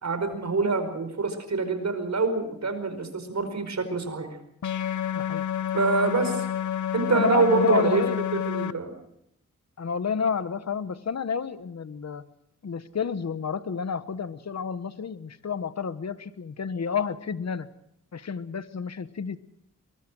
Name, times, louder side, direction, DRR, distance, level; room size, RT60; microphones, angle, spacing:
voice 1, 0.0-4.3 5.7-6.5 6.9-8.0 8.5-8.9, right 3 dB, 65° right, 8 dB, 4.9 m, -25 dB
sound 1, 4.6-8.7, left 9 dB, 75° left, 0.8 m, -29 dB
voice 2, 5.1-5.4 7.1-8.3 9.8-12.3 12.6-17.7 18.1-19.4, left 6 dB, 60° left, 14 dB, 1.2 m, -30 dB
23.0 x 21.5 x 6.3 m, 0.77 s
wide cardioid pair, 80°, 30 cm